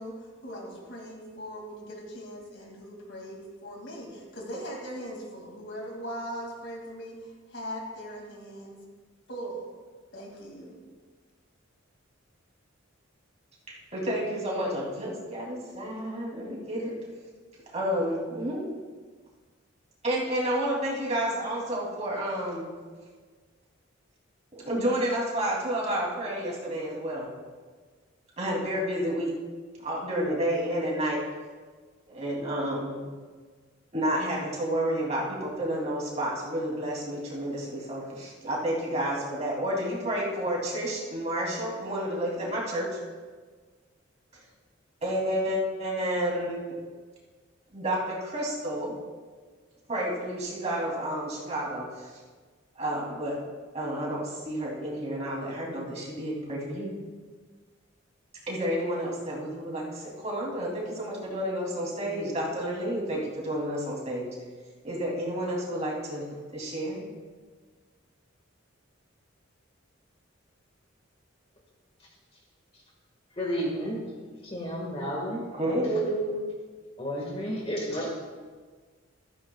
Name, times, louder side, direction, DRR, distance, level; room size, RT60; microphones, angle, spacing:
voice 1, 0.0-8.8 9.3-9.7 10.1-10.8, equal, 60° left, 0 dB, 2.4 m, -40 dB
voice 2, 13.7-16.9 17.7-18.7 20.0-22.7 24.5-27.3 28.4-29.3 29.8-31.2 32.1-33.0 33.9-42.9 45.0-46.6 47.7-48.9 49.9-52.1 52.8-53.4 53.7-56.9 58.5-64.3 64.8-66.3 66.5-67.0 75.6-76.4, right 1 dB, 35° right, -4 dB, 2.9 m, -30 dB
voice 3, 73.4-74.0 74.4-75.4 77.0-78.1, equal, 30° left, -2 dB, 1.7 m, -32 dB
14.5 x 14.0 x 2.4 m, 1.5 s
head